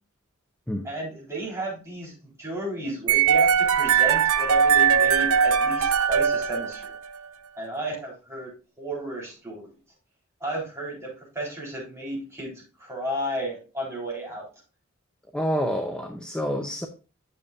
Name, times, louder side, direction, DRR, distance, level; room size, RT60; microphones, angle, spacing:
voice 1, 0.8-2.1 2.4-6.9 7.6-8.5 8.8-9.7 10.4-14.4, right 1 dB, 15° right, 3.7 m, -33 dB
sound 1, 3.1-7.2, right 7 dB, 80° right, 0.6 m, -20 dB
voice 2, 15.3-16.9, equal, 5° left, 0.6 m, -28 dB
9.5 x 6.9 x 2.5 m
head